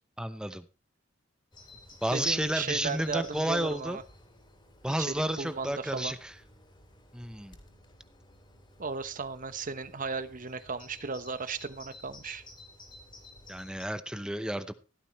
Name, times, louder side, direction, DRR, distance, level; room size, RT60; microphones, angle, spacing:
voice 1, 0.2-0.6 2.0-4.0 4.8-6.3 7.1-7.6 13.5-14.7, right 1 dB, 5° right, 11 dB, 0.7 m, -31 dB
Bird vocalization bird call bird song, 1.5-13.9, left 2 dB, 25° left, 3.6 m, -53 dB
voice 2, 2.1-4.0 5.0-6.2 8.8-12.4, right 4 dB, 45° right, 12 dB, 1.1 m, -35 dB
16.0 x 13.0 x 3.1 m, 0.30 s
head